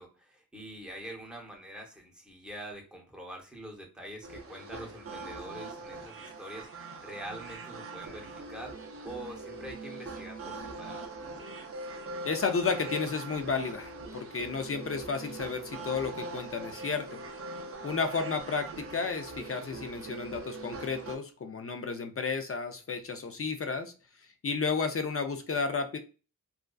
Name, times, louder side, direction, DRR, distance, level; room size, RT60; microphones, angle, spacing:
voice 1, 0.0-11.1, right 1 dB, 5° right, 0 dB, 0.7 m, -45 dB
sound 1, 4.2-21.2, right 2 dB, 40° right, 0.5 m, -42 dB
voice 2, 12.2-17.2 17.8-23.9 24.4-26.0, left 5 dB, 40° left, 6 dB, 0.4 m, -32 dB
2.4 x 2.3 x 2.2 m, 0.34 s
wide cardioid pair, 75°, 36 cm